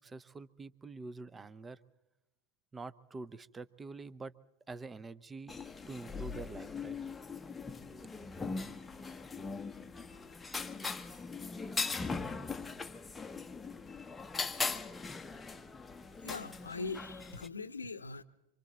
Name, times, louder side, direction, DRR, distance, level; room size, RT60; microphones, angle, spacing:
voice 1, 0.0-1.8 2.7-4.3 4.7-5.6 5.9-7.0, right 3 dB, 15° right, 17 dB, 0.8 m, -46 dB
sound 1, 5.5-17.5, left 4 dB, 10° left, 0.9 m, -40 dB
voice 2, 16.2-18.2, left 4 dB, 75° left, 15 dB, 0.9 m, -41 dB
26.5 x 25.5 x 4.0 m, 0.95 s
figure-of-eight pair, 90°, 0 cm